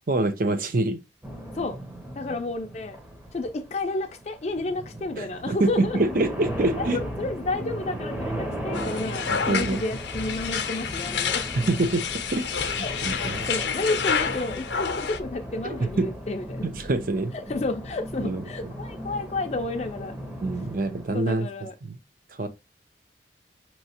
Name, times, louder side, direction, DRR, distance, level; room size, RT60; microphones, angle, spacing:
voice 1, 0.1-1.0 5.2-7.0 9.3-9.8 11.5-13.5 15.6-16.1 16.6-17.3 18.2-18.7 20.4-21.5 21.8-22.0 22.4-22.5, right 2 dB, 50° right, 0.6 m, -26 dB
sound 1, 1.2-21.1, equal, 10° right, 0.7 m, -36 dB
voice 2, 2.2-3.0 3.3-6.1 6.8-11.4 12.8-16.7 17.5-20.2 21.1-21.7, left 2 dB, 35° left, 0.4 m, -31 dB
sound 2, 8.7-15.2, left 7 dB, 85° left, 0.6 m, -29 dB
5.5 x 3.0 x 2.8 m
head